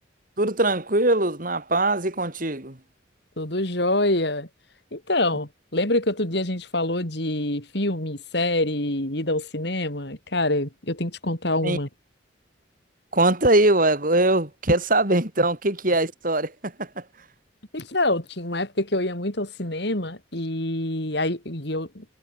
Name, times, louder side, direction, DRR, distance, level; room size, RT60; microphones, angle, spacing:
voice 1, 0.4-2.8 11.6-11.8 13.1-17.0, right 2 dB, 45° right, 3.6 m, -22 dB
voice 2, 3.4-4.5 4.9-11.9 17.7-22.0, left 1 dB, 55° left, 4.3 m, -26 dB
head